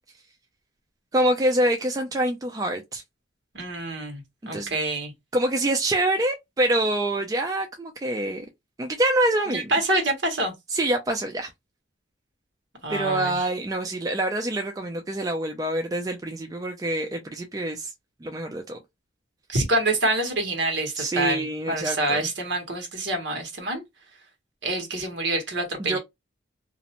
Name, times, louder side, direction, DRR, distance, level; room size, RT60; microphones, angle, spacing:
voice 1, 1.1-3.0 4.5-4.7 5.3-8.5 8.8-9.7 10.7-11.5 12.9-17.9 18.2-18.8 21.0-22.2 25.9-26.0, right 1 dB, 20° right, 0.3 m, -25 dB
voice 2, 3.5-5.1 9.5-10.5 12.8-13.5 19.5-23.8 24.6-26.0, right 2 dB, 65° right, 1.1 m, -26 dB
2.5 x 2.0 x 2.8 m
head